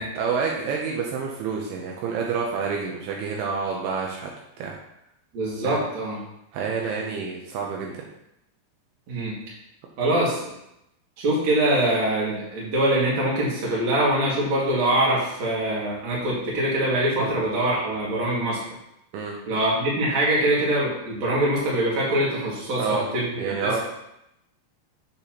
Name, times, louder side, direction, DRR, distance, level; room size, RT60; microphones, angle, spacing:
voice 1, 0.2-4.3 4.6-4.8 5.6-5.8 6.5-8.0 17.2-17.3 19.1-19.4 22.8-23.0 23.4-23.8, right 5 dB, 85° right, -1 dB, 2.3 m, -28 dB
voice 2, 5.3-6.2 9.1-9.3 10.0-10.4 11.2-18.6 19.5-23.8, right 1 dB, 50° right, -5 dB, 2.4 m, -23 dB
7.5 x 6.8 x 2.9 m, 0.82 s
omnidirectional pair, 5.5 m